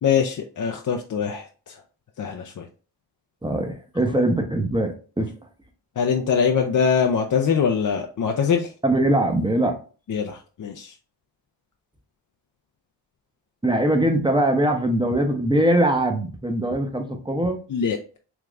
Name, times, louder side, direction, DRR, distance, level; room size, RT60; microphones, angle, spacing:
voice 1, 0.0-1.4 2.2-2.4 6.0-8.7 10.1-10.9 17.7-18.2, left 6 dB, 45° left, 3 dB, 0.5 m, -22 dB
voice 2, 3.4-5.3 8.8-9.8 13.6-17.6, right 1 dB, 10° right, 4 dB, 0.7 m, -22 dB
3.4 x 2.9 x 2.4 m, 0.36 s
cardioid pair, 50°, 44 cm